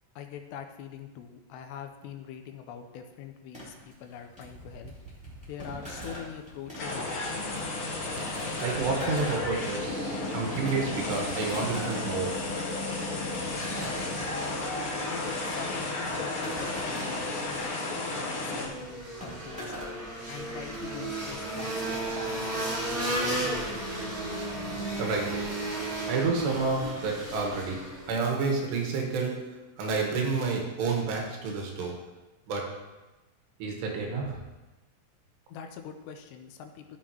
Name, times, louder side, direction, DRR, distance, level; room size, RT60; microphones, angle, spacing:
voice 1, 0.2-4.9 5.5-7.4 15.0-19.7 20.3-22.8 23.0-24.1 35.5-37.0, left 8 dB, 85° left, 6 dB, 2.9 m, -44 dB
sound 1, 3.5-20.9, right 1 dB, ahead, 2.4 m, -43 dB
sound 2, 6.8-18.7, left 2 dB, 50° left, 1.6 m, -33 dB
voice 2, 8.6-12.6 25.0-25.5 26.1-32.0 32.5-32.8 33.6-34.4, right 4 dB, 80° right, 0 dB, 3.5 m, -30 dB
sound 3, 18.4-28.2, right 1 dB, 45° right, 1.1 m, -33 dB
14.0 x 7.3 x 3.0 m, 1.1 s
omnidirectional pair, 4.9 m